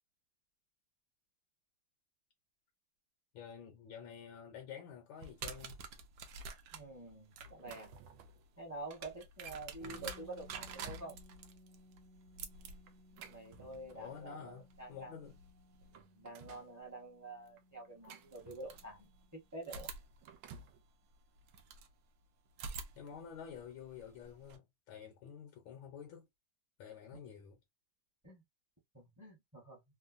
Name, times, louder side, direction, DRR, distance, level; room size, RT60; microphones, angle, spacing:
voice 1, 3.3-5.8 9.8-10.0 13.9-15.4 22.9-26.3 26.8-27.6, left 8 dB, 75° left, 1.5 m, -50 dB
sound 1, 5.2-16.0 17.5-17.6 18.3-19.3 19.6-21.9 22.5-24.6, right 5 dB, 70° right, 1.1 m, -50 dB
voice 2, 6.7-7.9 8.6-11.2 13.1-15.1 15.9-19.9 28.2-28.4 28.9-29.8, right 2 dB, 15° right, 0.7 m, -48 dB
sound 2, 7.4-8.5 9.1-9.2 9.8-9.9 10.4-11.2 12.9-14.2 15.2-15.3 15.7-16.7 17.6-19.0 20.0-20.8, right 5 dB, 85° right, 1.4 m, -55 dB
sound 3, 9.8-19.5, equal, 45° right, 0.7 m, -62 dB
3.6 x 2.1 x 2.5 m
omnidirectional pair, 2.2 m